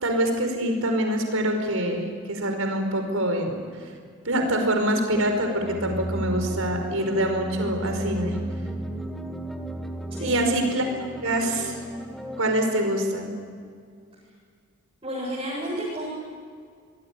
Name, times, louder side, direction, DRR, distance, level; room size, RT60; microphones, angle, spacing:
voice 1, 0.0-3.5 4.3-8.4 10.2-10.8 11.2-11.7 12.4-13.3, right 1 dB, 75° right, 5 dB, 5.1 m, -25 dB
sound 1, 5.1-12.4, right 1 dB, ahead, 1.7 m, -34 dB
voice 2, 10.2-10.6 15.0-16.1, right 1 dB, 25° right, -6 dB, 7.8 m, -31 dB
26.0 x 21.5 x 9.8 m, 2.1 s
head